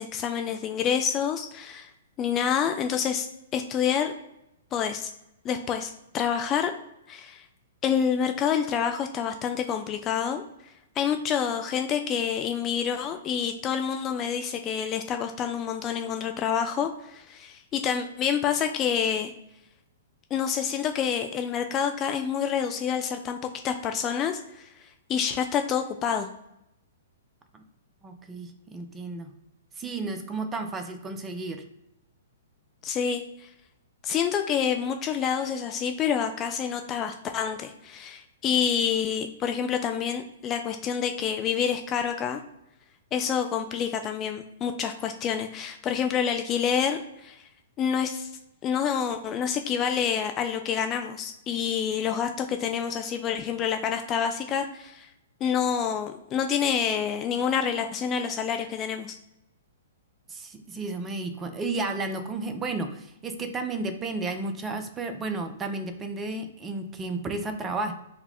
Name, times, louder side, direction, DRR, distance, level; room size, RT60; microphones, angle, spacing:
voice 1, 0.0-1.9 2.2-3.3 3.5-4.1 4.7-5.1 5.4-6.7 7.1-7.4 7.8-10.4 11.0-19.3 20.3-24.7 25.1-26.3 32.8-33.2 34.0-42.4 43.1-47.3 47.8-48.3 48.6-55.1 55.4-59.2, left 7 dB, 25° left, 6 dB, 0.4 m, -27 dB
voice 2, 28.0-29.3 29.8-31.6 60.3-67.9, right 3 dB, 20° right, 7 dB, 0.6 m, -32 dB
3.9 x 2.3 x 4.2 m, 0.85 s
figure-of-eight pair, 115°, 0 cm